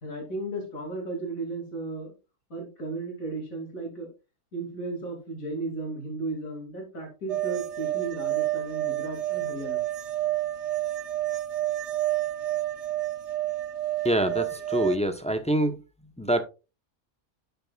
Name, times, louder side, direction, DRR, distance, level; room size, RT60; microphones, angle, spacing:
voice 1, 0.0-2.1 2.5-4.1 4.5-9.8, right 2 dB, 65° left, 3.1 m, -35 dB
sound 1, 7.3-15.0, right 14 dB, 60° right, 0.8 m, -29 dB
voice 2, 14.0-15.8 16.2-16.4, right 1 dB, 5° left, 0.7 m, -25 dB
10.5 x 6.8 x 2.4 m
omnidirectional pair, 1.5 m